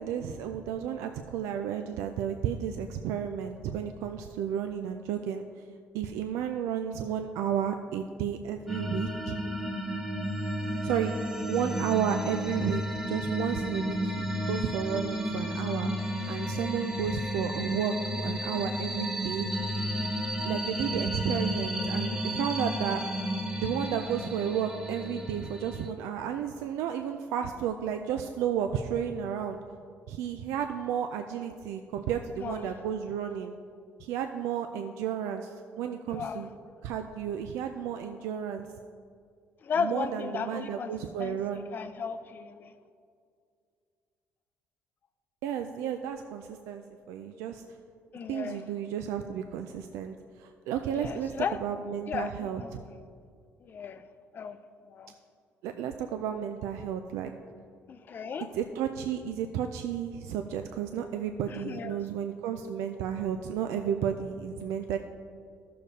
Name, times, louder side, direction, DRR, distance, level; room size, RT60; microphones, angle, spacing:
voice 1, 0.0-5.5 5.9-9.4 10.8-11.1 11.5-19.5 20.4-23.1 23.6-29.6 30.1-33.5 34.0-36.5 36.8-38.7 39.8-41.7 45.4-47.6 48.3-51.3 51.6-52.8 55.6-57.3 58.5-65.0, right 8 dB, 90° right, 6 dB, 0.4 m, -32 dB
sound 1, 8.7-25.9, equal, 10° right, 0.8 m, -32 dB
voice 2, 32.4-32.8 36.1-36.5 39.6-40.9 41.2-42.7 48.1-48.6 50.9-51.6 52.1-53.0 53.6-54.0 54.3-54.6 54.9-55.1 57.9-58.5 61.5-62.0, left 6 dB, 45° left, 10 dB, 0.5 m, -35 dB
14.0 x 6.5 x 2.7 m, 2.3 s
cardioid pair, 100°, 5 cm